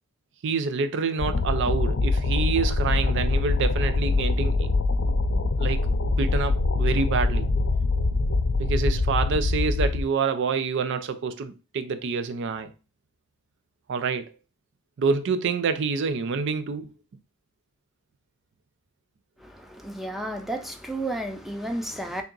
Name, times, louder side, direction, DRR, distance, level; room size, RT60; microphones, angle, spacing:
voice 1, 0.4-4.7 5.0-5.1 5.6-5.8 6.2-7.5 8.6-12.7 13.9-14.3 15.0-16.9, right 5 dB, 55° right, 0.4 m, -27 dB
sound 1, 1.2-10.0, left 3 dB, 60° left, 0.5 m, -24 dB
voice 2, 19.4-22.2, right 1 dB, ahead, 0.5 m, -32 dB
3.4 x 2.8 x 3.8 m
head